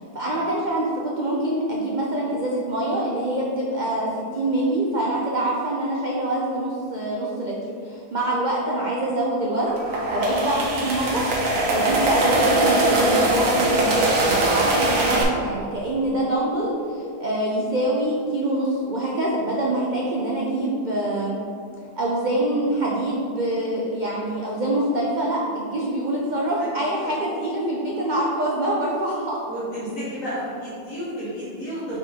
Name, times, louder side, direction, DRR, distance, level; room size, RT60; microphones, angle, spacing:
voice 1, 0.0-7.5 7.8-9.8 10.1-11.3 11.7-21.4 22.0-29.4, right 1 dB, 80° right, -4 dB, 0.4 m, -25 dB
sound 1, 9.6-15.2, right 1 dB, 60° right, 1.2 m, -21 dB
voice 2, 29.5-32.0, equal, 55° left, -11 dB, 1.8 m, -32 dB
5.1 x 4.2 x 4.4 m, 2.4 s
omnidirectional pair, 1.7 m